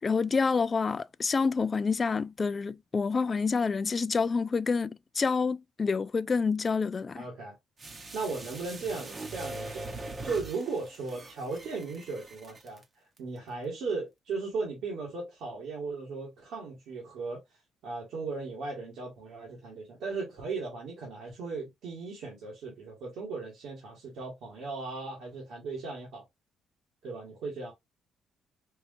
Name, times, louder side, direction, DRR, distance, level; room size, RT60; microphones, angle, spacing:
voice 1, 0.0-7.2, left 5 dB, 35° left, 0.3 m, -28 dB
voice 2, 7.1-7.5 8.1-9.9 10.2-12.8 13.2-17.4 17.8-26.2 27.0-27.7, right 4 dB, 85° right, 1.6 m, -37 dB
sound 1, 7.8-12.8 13.2-13.3, right 2 dB, 35° right, 1.0 m, -42 dB
4.6 x 2.6 x 2.6 m
cardioid pair, 90°, 0 cm